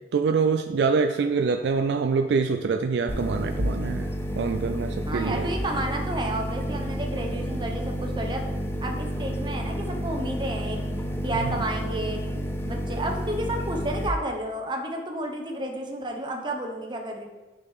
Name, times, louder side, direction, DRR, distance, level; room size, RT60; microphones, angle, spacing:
voice 1, 0.1-5.5 11.4-11.6, right 5 dB, 70° right, 7 dB, 0.3 m, -25 dB
sound 1, 3.1-14.1, equal, 15° left, 0.5 m, -30 dB
voice 2, 5.1-8.4 8.8-10.8 11.2-12.2 12.7-17.3, right 1 dB, 25° right, 1 dB, 0.9 m, -31 dB
9.1 x 5.0 x 3.6 m, 1.2 s
head